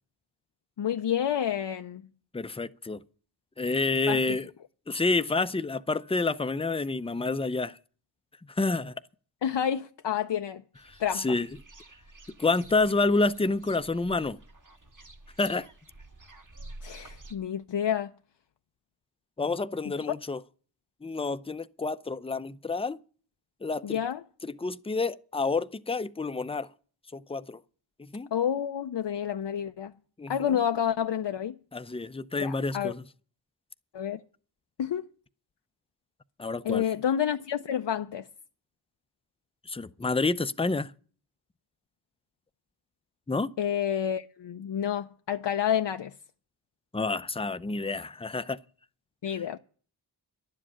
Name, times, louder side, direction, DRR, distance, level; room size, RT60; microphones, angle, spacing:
voice 1, 0.8-2.1 4.1-4.4 9.4-10.6 11.0-11.4 16.8-18.1 23.8-24.2 28.3-29.9 30.3-31.6 32.4-32.9 33.9-34.2 34.8-35.0 36.6-38.3 43.6-46.1 49.2-49.6, left 9 dB, 75° left, 0.6 m, -29 dB
voice 2, 2.3-3.0 3.6-4.5 4.9-7.8 8.6-8.9 11.1-11.5 12.4-14.4 15.4-15.7 19.4-20.4 21.0-23.0 23.6-24.0 24.4-26.7 27.1-27.6 28.0-28.3 30.2-30.5 31.7-33.0 36.4-36.8 39.7-40.9 43.3-43.5 46.9-48.6, left 3 dB, 15° left, 0.5 m, -28 dB
sound 1, 10.7-17.3, right 2 dB, 45° right, 1.9 m, -50 dB
11.5 x 7.6 x 9.8 m
wide cardioid pair, 65°, 43 cm